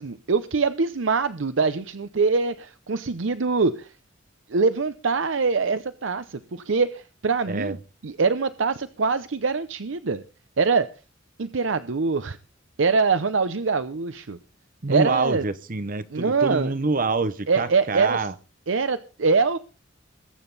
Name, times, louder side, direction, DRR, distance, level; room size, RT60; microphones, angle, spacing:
voice 1, 0.0-3.9 4.5-7.8 8.0-10.2 10.6-10.9 11.4-12.4 12.8-14.4 14.9-15.4 16.1-16.7 17.5-18.3 18.7-19.6, right 4 dB, 80° right, 0.7 m, -23 dB
voice 2, 14.8-18.3, right 3 dB, 45° right, 0.9 m, -26 dB
21.5 x 8.8 x 4.0 m
head